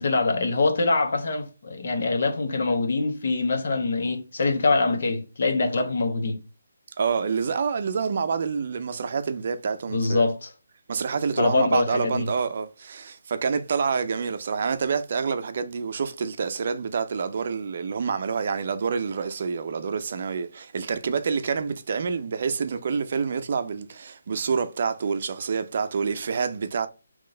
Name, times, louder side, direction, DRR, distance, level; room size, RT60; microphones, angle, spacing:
voice 1, 0.0-6.4 9.9-10.5 11.4-12.3, left 3 dB, 55° left, 1.1 m, -24 dB
voice 2, 7.0-10.3 10.9-26.9, right 5 dB, 50° right, 0.5 m, -27 dB
3.8 x 3.1 x 3.8 m
hypercardioid pair, 160°, 0 cm